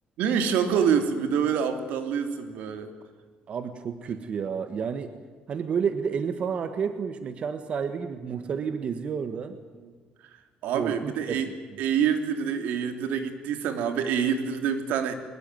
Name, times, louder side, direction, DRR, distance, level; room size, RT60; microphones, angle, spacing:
voice 1, 0.2-2.9 10.6-11.5 11.8-15.1, right 7 dB, 85° right, 8 dB, 3.2 m, -26 dB
voice 2, 3.5-5.2 5.5-9.6 10.7-11.8, right 6 dB, 45° right, 9 dB, 1.6 m, -30 dB
23.0 x 21.5 x 9.3 m, 1.5 s
cardioid pair, 140°, 3 cm